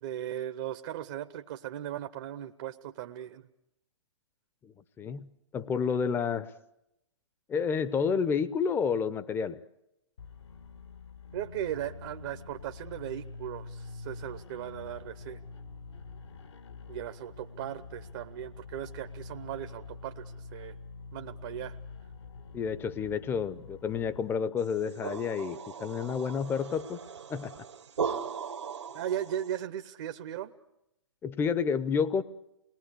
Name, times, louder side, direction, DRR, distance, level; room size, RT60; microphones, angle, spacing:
voice 1, 0.0-3.5 11.3-15.4 16.9-20.8 21.1-21.8 28.9-30.5, right 11 dB, 40° right, 9 dB, 1.0 m, -37 dB
voice 2, 4.6-6.5 7.5-9.6 22.5-27.0 27.3-27.6 31.2-32.2, left 6 dB, 15° left, 14 dB, 0.8 m, -30 dB
sound 1, 10.2-24.2, left 4 dB, 65° left, 1.7 m, -46 dB
sound 2, 24.6-29.6, right 6 dB, 70° right, 1.6 m, -38 dB
28.0 x 20.5 x 8.3 m, 0.88 s
figure-of-eight pair, 120°, 15 cm